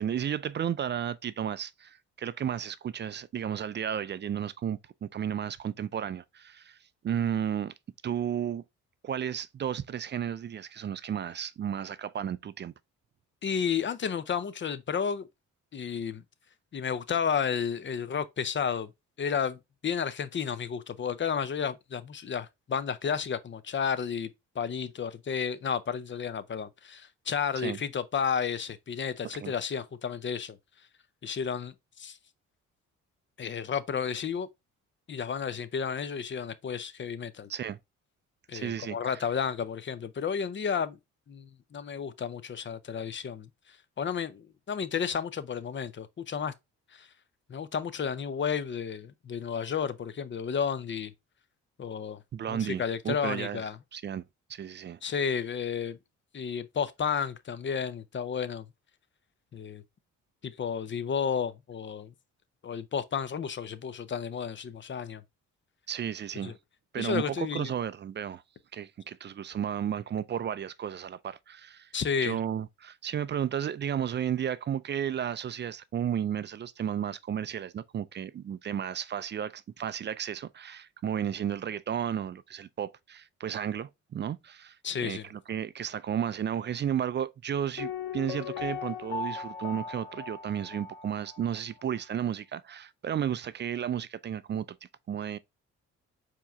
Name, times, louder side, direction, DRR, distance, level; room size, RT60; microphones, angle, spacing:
voice 1, 0.0-6.8 7.0-7.7 8.0-8.6 9.0-12.7 27.6-27.8 29.3-29.5 37.5-37.8 38.5-39.1 52.3-53.6 53.9-54.2 54.5-55.0 65.9-66.6 66.9-68.4 68.7-71.9 72.2-84.8 85.0-94.7 95.1-95.4, right 9 dB, 35° right, 0.4 m, -33 dB
voice 2, 13.4-15.3 15.7-16.2 16.7-18.9 19.2-24.3 24.5-30.6 31.2-32.2 33.4-34.5 35.1-37.5 38.5-41.0 41.3-46.5 46.9-47.1 47.5-51.1 51.8-52.2 52.5-53.8 55.0-56.0 56.3-58.7 59.5-59.8 60.4-62.1 62.6-65.2 66.4-66.5 67.0-67.7 71.9-72.4 84.8-85.3, left 7 dB, 35° left, 0.6 m, -32 dB
Piano, 87.8-91.5 91.8-91.9, left 6 dB, 85° left, 0.7 m, -38 dB
4.6 x 3.0 x 3.4 m
supercardioid pair, 55°, 34 cm